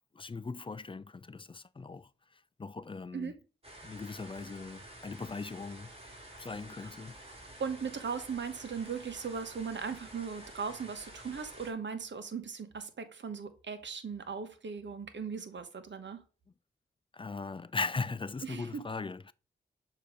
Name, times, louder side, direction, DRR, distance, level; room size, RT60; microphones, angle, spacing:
voice 1, 0.1-3.3 3.8-5.9 6.4-7.2 17.1-19.3, left 4 dB, 25° left, 0.4 m, -39 dB
sound 1, 3.6-11.7, right 1 dB, 30° right, 2.5 m, -50 dB
voice 2, 7.3-16.2 18.4-18.8, right 6 dB, 60° right, 1.1 m, -38 dB
6.7 x 2.9 x 4.9 m
supercardioid pair, 40°, 21 cm